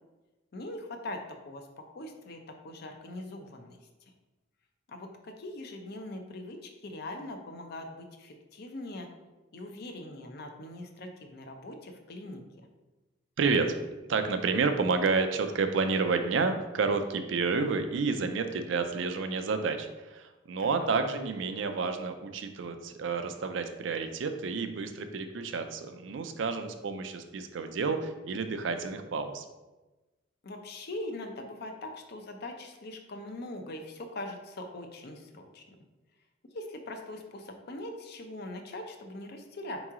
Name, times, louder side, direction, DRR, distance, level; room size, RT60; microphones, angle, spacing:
voice 1, 0.5-3.8 4.9-9.1 9.5-12.4 20.6-20.9 30.4-35.6 36.5-39.8, left 1 dB, 55° left, 5 dB, 0.5 m, -41 dB
voice 2, 13.4-13.8 14.1-29.5, right 4 dB, 65° right, 8 dB, 0.4 m, -30 dB
4.6 x 3.0 x 3.6 m, 1.1 s
head